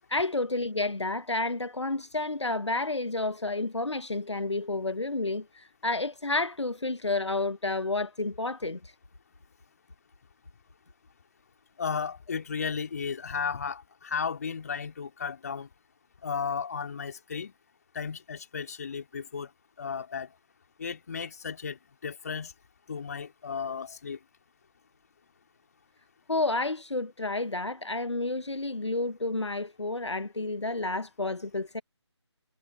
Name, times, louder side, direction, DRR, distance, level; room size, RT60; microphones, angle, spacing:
voice 1, 0.1-8.9 26.3-31.8, left 2 dB, 75° left, 1.0 m, -30 dB
voice 2, 11.8-15.7 16.2-17.5 17.9-19.5 19.8-20.3 20.8-22.5 22.9-24.2, left 6 dB, 35° left, 2.5 m, -34 dB
figure-of-eight pair, 155°, 15 cm